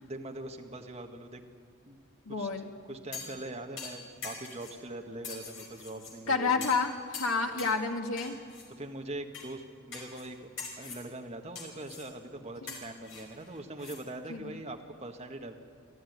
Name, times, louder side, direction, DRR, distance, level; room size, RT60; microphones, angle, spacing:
voice 1, 0.0-1.4 1.8-2.0 2.3-2.5 2.9-6.7 7.6-7.8 8.8-10.5 10.8-15.5, right 2 dB, 30° right, 3 dB, 1.5 m, -42 dB
voice 2, 2.3-2.7 6.3-8.4 12.6-12.8 14.3-14.5, left 4 dB, 75° left, 3 dB, 2.0 m, -30 dB
sound 1, 3.1-3.4 3.8-4.8 5.2-6.1 6.6-6.9 7.1-7.8 8.2-8.7 9.3-9.5 9.9-10.3 10.6-11.0 11.5-12.1 12.7-14.0 14.3-14.4, left 4 dB, 60° left, 5.0 m, -43 dB
24.5 x 14.0 x 9.5 m, 2.1 s
head